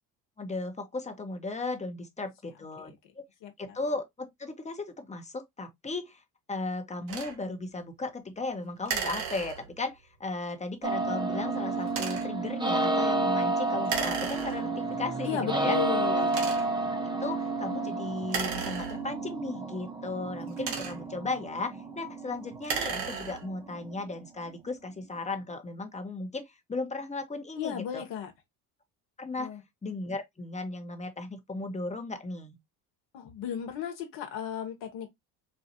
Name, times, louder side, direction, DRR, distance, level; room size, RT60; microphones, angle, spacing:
voice 1, 0.4-3.2 3.6-15.8 16.2-16.3 16.9-28.0 29.2-29.5 29.8-32.6, left 3 dB, 15° left, 0.9 m, -36 dB
voice 2, 2.8-3.1 3.4-3.8 15.2-16.3 27.6-28.3 29.4-29.6 33.1-35.1, left 9 dB, 60° left, 1.2 m, -35 dB
sound 1, 7.1-7.4 8.9-9.9 11.9-12.4 13.9-14.9 15.5-15.6 16.3-16.9 18.2-19.4 20.3-21.2 22.5-23.6, right 5 dB, 90° right, 1.1 m, -35 dB
sound 2, 10.8-24.7, right 2 dB, 10° right, 0.7 m, -31 dB
4.3 x 2.4 x 2.8 m
hypercardioid pair, 70°, 50 cm